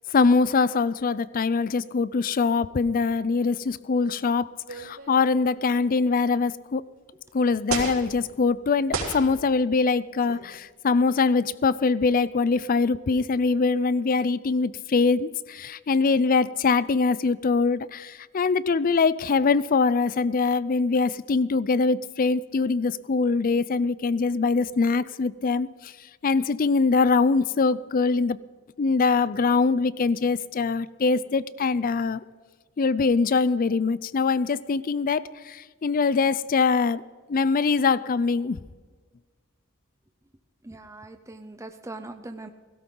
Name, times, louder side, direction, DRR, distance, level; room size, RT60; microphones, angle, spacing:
voice 1, 0.1-6.8 7.3-25.9 26.2-28.4 28.8-32.2 32.8-37.0 37.3-38.6, left 4 dB, 40° left, 0.4 m, -23 dB
sound 1, 4.7-5.6 6.5-6.6 7.7-8.1 8.9-9.4 10.2-10.5, right 4 dB, 70° right, 3.8 m, -32 dB
voice 2, 40.6-42.5, right 2 dB, 15° right, 0.6 m, -41 dB
16.5 x 16.5 x 3.9 m
head